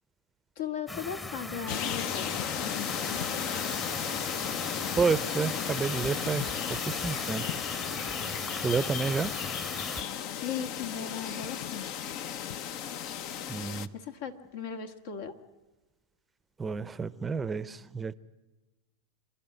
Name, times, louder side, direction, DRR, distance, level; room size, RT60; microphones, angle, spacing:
voice 1, 0.6-3.5 10.4-11.9 13.9-15.4, left 7 dB, 65° left, 6 dB, 1.8 m, -38 dB
sound 1, 0.9-10.0, left 2 dB, 15° left, 1.0 m, -38 dB
sound 2, 1.7-13.9, left 9 dB, 50° left, 0.8 m, -35 dB
voice 2, 5.0-7.6 8.6-9.3 13.5-13.9 16.6-18.1, right 5 dB, 15° right, 17 dB, 0.6 m, -30 dB
27.0 x 11.5 x 9.2 m, 1.1 s
hypercardioid pair, 100°, 0 cm